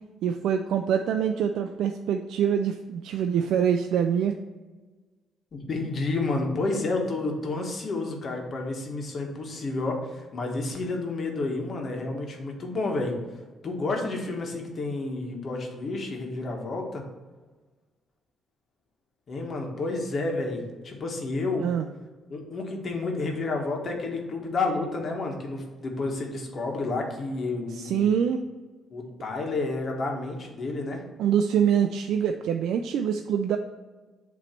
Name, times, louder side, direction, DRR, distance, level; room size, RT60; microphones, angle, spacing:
voice 1, 0.2-4.4 21.6-21.9 27.7-28.4 31.2-33.6, right 8 dB, 80° right, 6 dB, 0.3 m, -25 dB
voice 2, 5.5-13.1 13.6-17.0 19.3-21.7 22.3-28.0 28.9-31.0, left 3 dB, 50° left, 2 dB, 1.4 m, -30 dB
8.0 x 3.1 x 4.4 m, 1.3 s
cardioid pair, 90°, 0 cm